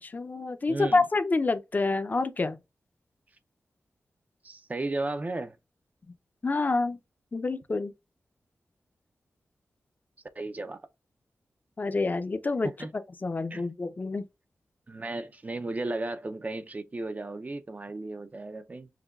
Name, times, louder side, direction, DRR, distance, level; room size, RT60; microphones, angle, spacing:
voice 1, 0.0-2.6 6.4-7.0 7.3-7.9 11.8-12.7 13.2-14.2, left 3 dB, 40° left, 0.5 m, -27 dB
voice 2, 0.7-1.0 4.4-5.6 10.4-10.8 12.6-12.9 13.5-13.6 14.9-18.9, right 2 dB, 35° right, 0.4 m, -34 dB
5.8 x 2.2 x 2.3 m
cardioid pair, 70°, 5 cm